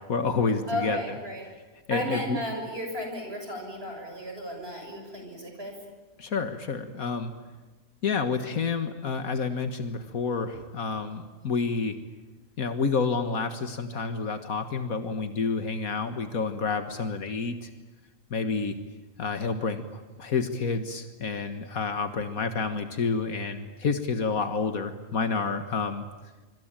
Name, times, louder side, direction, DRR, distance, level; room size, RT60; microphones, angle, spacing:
voice 1, 0.1-1.0 1.9-2.4 6.2-7.3 8.0-12.0 12.6-17.7 18.3-18.8 19.2-26.1, left 4 dB, 80° left, 8 dB, 2.0 m, -29 dB
voice 2, 0.7-1.4 1.9-5.7, equal, 45° right, 3 dB, 6.9 m, -34 dB
26.5 x 25.0 x 9.0 m, 1.2 s
omnidirectional pair, 1.5 m